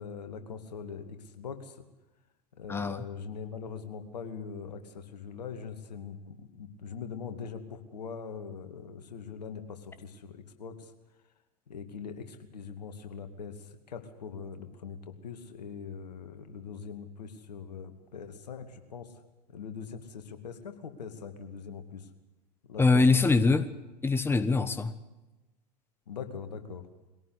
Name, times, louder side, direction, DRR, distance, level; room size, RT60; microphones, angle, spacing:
voice 1, 0.0-1.8 2.5-10.9 11.7-19.1 19.5-22.1 22.7-23.1 23.5-23.6 26.1-26.9, left 6 dB, 75° left, 8 dB, 2.5 m, -42 dB
voice 2, 2.7-3.0 22.8-23.7 24.0-24.9, left 3 dB, 10° left, 13 dB, 1.3 m, -23 dB
22.0 x 17.5 x 8.2 m, 1.0 s
figure-of-eight pair, 85°, 21 cm